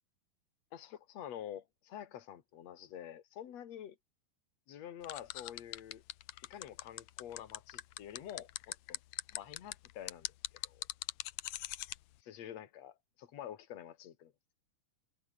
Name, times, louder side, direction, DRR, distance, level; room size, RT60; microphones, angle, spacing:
voice 1, 0.7-4.0 4.7-6.0 6.4-9.0 9.3-10.9 12.2-12.9 13.3-14.3, left 10 dB, 50° left, 2.9 m, -48 dB
sound 1, 5.0-12.0, left 15 dB, 80° left, 1.6 m, -41 dB
omnidirectional pair, 4.3 m